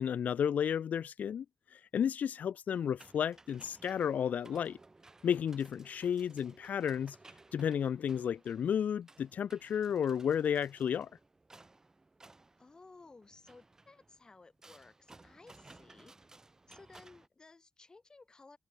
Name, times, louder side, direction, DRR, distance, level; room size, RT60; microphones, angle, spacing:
voice 1, 0.0-1.4 1.7-4.8 5.2-7.2 7.5-11.1, left 8 dB, 85° left, 0.6 m, -32 dB
sound 1, 2.8-17.3, right 2 dB, 20° right, 2.7 m, -59 dB
voice 2, 12.6-16.1 16.7-18.6, left 3 dB, 30° left, 2.8 m, -57 dB
wide cardioid pair, 145°, 3 cm